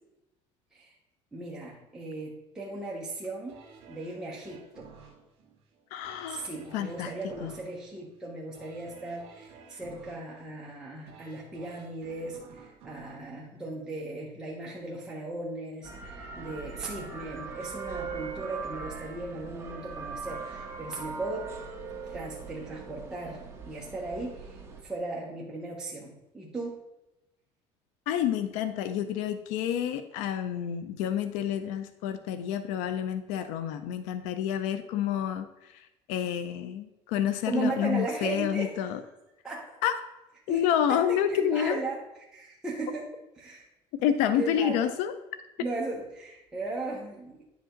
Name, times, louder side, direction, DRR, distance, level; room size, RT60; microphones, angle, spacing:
voice 1, 1.3-3.5 3.9-4.9 6.3-21.5 22.1-26.8 37.4-38.7 39.4-39.8 40.5-40.6 40.9-42.0 42.3-43.1 43.4-43.7 44.4-44.9 45.6-47.4, right 2 dB, 5° right, -5 dB, 1.1 m, -37 dB
sound 1, 3.5-14.4 14.9-15.0, right 5 dB, 55° right, 1.8 m, -53 dB
voice 2, 5.9-7.1 7.4-7.5 28.1-35.5 36.1-39.0 39.8-39.9 40.5-41.8 44.0-45.1, left 10 dB, 85° left, 11 dB, 0.5 m, -29 dB
sound 2, 15.8-24.8, right 5 dB, 20° right, 1.2 m, -40 dB
10.0 x 5.1 x 3.8 m, 0.94 s
cardioid pair, 150°, 12 cm